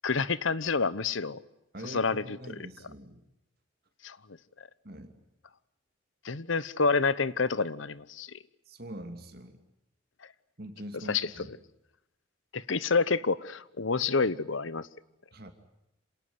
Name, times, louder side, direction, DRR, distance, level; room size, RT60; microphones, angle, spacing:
voice 1, 0.0-1.4 1.8-2.6 4.0-4.2 6.2-8.3 11.1-11.3 12.5-14.9, left 4 dB, 75° left, 1.0 m, -28 dB
voice 2, 1.7-3.2 4.8-5.1 8.7-9.6 10.6-11.5 15.3-15.5, equal, 50° right, 2.6 m, -43 dB
27.0 x 18.5 x 9.6 m
head